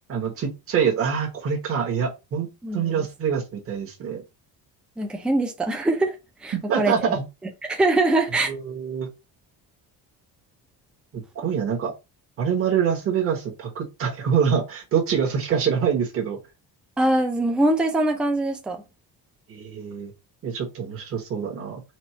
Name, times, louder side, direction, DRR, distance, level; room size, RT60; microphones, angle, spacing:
voice 1, 0.1-4.2 6.5-7.2 8.5-9.1 11.1-11.9 12.4-16.4 19.5-20.1 20.4-21.8, right 7 dB, 35° right, 1.2 m, -25 dB
voice 2, 2.6-3.1 5.0-6.1 6.4-7.1 7.6-8.5 17.0-18.8, right 2 dB, 5° right, 0.4 m, -23 dB
4.3 x 2.4 x 4.4 m
cardioid pair, 175°, 39 cm